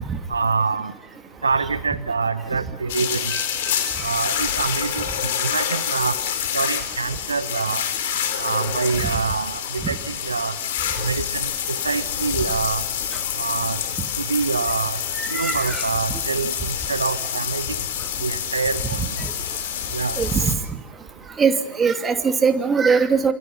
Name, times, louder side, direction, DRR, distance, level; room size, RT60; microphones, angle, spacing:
voice 1, 0.3-0.9 1.4-3.3 4.0-6.2 6.5-7.8 8.4-10.6 11.0-12.8 13.4-13.8 14.2-15.0 15.3-17.8 18.2-19.1 19.9-20.2, right 4 dB, 75° right, 15 dB, 0.9 m, -25 dB
sound 1, 2.9-20.6, left 9 dB, 55° left, 4.3 m, -27 dB
voice 2, 15.2-15.8 19.2-19.3 20.2-20.5 21.4-21.5 21.8-23.3, right 5 dB, 20° right, 7 dB, 2.8 m, -20 dB
29.0 x 27.5 x 5.5 m, 0.74 s
figure-of-eight pair, 90°, 0 cm